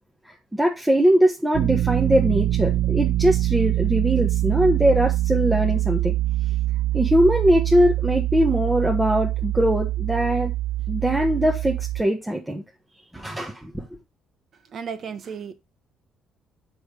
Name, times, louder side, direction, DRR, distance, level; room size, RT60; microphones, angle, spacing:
voice 1, 0.6-6.1 6.9-10.5 10.9-12.6 13.1-13.7, equal, 10° right, 1.4 m, -21 dB
sound 1, 1.5-12.0, right 15 dB, 75° right, 0.6 m, -24 dB
voice 2, 14.7-15.5, right 6 dB, 50° right, 1.2 m, -33 dB
6.3 x 5.4 x 4.8 m
cardioid pair, 100°, 0 cm